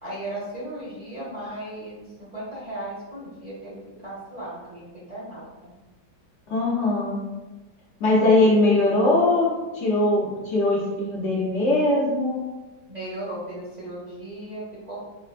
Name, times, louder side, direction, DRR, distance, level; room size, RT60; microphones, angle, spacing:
voice 1, 0.0-5.7 12.9-15.0, right 1 dB, 30° right, -8 dB, 0.8 m, -36 dB
voice 2, 6.5-7.2 8.0-12.4, left 2 dB, 65° left, -5 dB, 0.7 m, -21 dB
5.0 x 2.1 x 2.4 m, 1.1 s
omnidirectional pair, 2.0 m